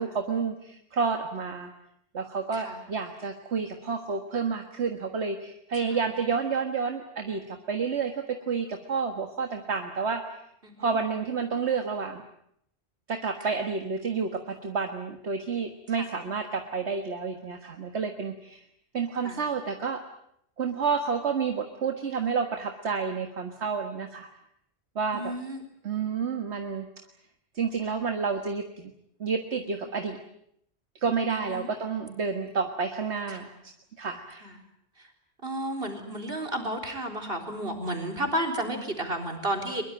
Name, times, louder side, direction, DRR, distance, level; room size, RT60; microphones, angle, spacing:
voice 1, 0.0-1.7 2.1-10.2 10.8-12.2 13.1-18.6 18.9-20.0 20.6-24.3 25.0-25.3 25.8-26.9 27.5-28.9 29.2-30.2 31.0-33.5 34.0-34.5, right 5 dB, 75° right, 5 dB, 1.9 m, -30 dB
voice 2, 10.6-11.0 16.0-16.1 19.2-19.4 25.1-25.6 31.3-31.7 33.3-33.4 34.4-34.5 35.4-39.8, right 1 dB, 55° right, 4 dB, 4.2 m, -32 dB
22.5 x 22.5 x 8.9 m, 0.72 s
omnidirectional pair, 1.2 m